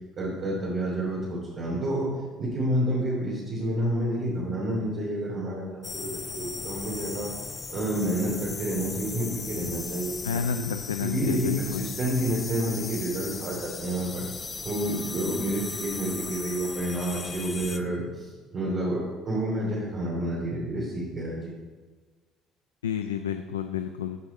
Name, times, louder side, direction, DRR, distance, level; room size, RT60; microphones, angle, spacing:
voice 1, 0.2-2.1 2.4-7.3 7.7-10.6 11.1-14.3 14.6-21.6, right 1 dB, 45° right, -5 dB, 3.0 m, -29 dB
sound 1, 5.8-17.8, left 4 dB, 30° left, 0.7 m, -37 dB
voice 2, 10.2-11.9 22.8-24.2, left 8 dB, 85° left, 8 dB, 0.3 m, -30 dB
14.0 x 4.9 x 4.3 m, 1.3 s
hypercardioid pair, 55°, 0 cm